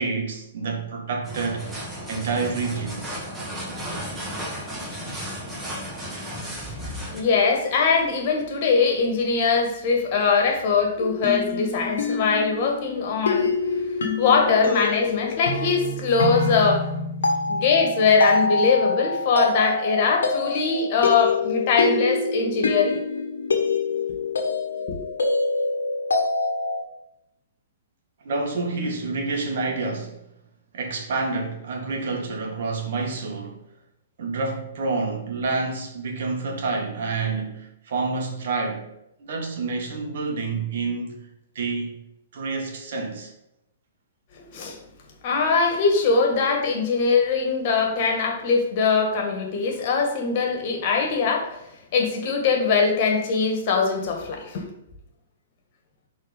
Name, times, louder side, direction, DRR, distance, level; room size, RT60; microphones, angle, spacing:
voice 1, 0.0-1.7 2.1-3.2 28.2-30.2 30.7-33.6 34.2-38.9 39.2-41.1 41.6-42.0 42.3-43.3, right 4 dB, 65° right, 1.7 m, -28 dB
sound 1, 1.2-7.2, equal, 10° right, 1.8 m, -34 dB
voice 2, 7.1-13.5 14.2-16.9 17.5-23.0 24.9-25.0 44.5-44.8 45.2-51.6 51.9-54.7, left 5 dB, 50° left, 1.8 m, -22 dB
sound 2, 11.0-26.8, left 3 dB, 85° left, 1.3 m, -25 dB
6.0 x 4.1 x 5.2 m
hypercardioid pair, 125°, 0 cm